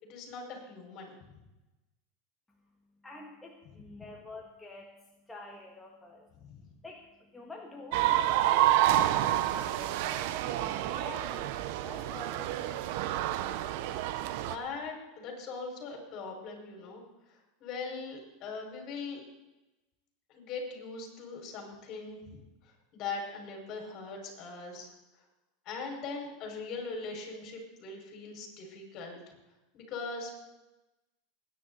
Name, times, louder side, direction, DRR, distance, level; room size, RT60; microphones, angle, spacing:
voice 1, 0.0-1.1 6.5-6.6 14.4-17.0 17.3-19.2 20.3-22.4 22.6-24.9 25.7-29.2 29.7-30.3, left 4 dB, 50° left, 1 dB, 5.2 m, -40 dB
voice 2, 3.0-5.0 5.3-6.3 6.8-11.5 11.8-12.8, left 2 dB, 10° left, -1 dB, 1.9 m, -48 dB
sound 1, 7.9-14.6, right 13 dB, 65° right, 0.9 m, -29 dB
20.0 x 10.0 x 4.1 m, 1.0 s
hypercardioid pair, 110°, 0 cm